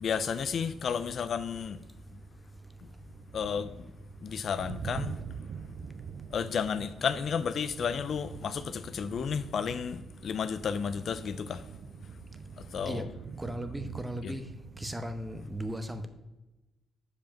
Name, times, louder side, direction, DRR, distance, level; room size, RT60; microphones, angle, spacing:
voice 1, 0.0-1.8 3.3-3.7 4.2-5.1 6.3-11.6 12.7-13.1 14.2-14.3, left 7 dB, 55° left, 0.4 m, -32 dB
sound 1, 2.6-15.3, right 7 dB, 60° right, 0.3 m, -45 dB
voice 2, 13.4-14.4 14.8-16.1, equal, 10° right, 0.9 m, -36 dB
7.1 x 5.1 x 5.8 m
cardioid pair, 90°, 0 cm